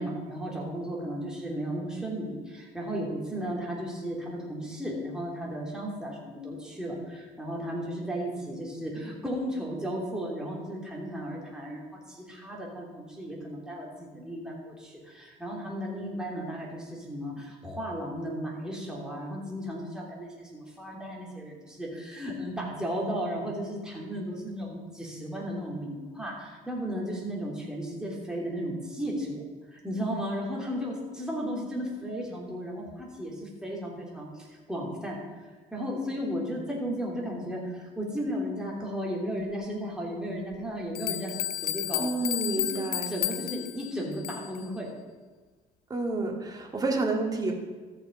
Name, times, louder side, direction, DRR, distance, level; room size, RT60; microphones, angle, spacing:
voice 1, 0.0-29.4 29.7-35.2 35.7-42.1 42.6-44.9, equal, 5° right, -3 dB, 3.1 m, -35 dB
sound 1, 40.5-40.6 41.0-44.7, left 13 dB, 65° left, 0.5 m, -32 dB
voice 2, 42.0-43.1 45.9-47.5, right 3 dB, 20° right, 1 dB, 2.1 m, -29 dB
14.0 x 6.7 x 5.3 m, 1.4 s
cardioid pair, 110°, 17 cm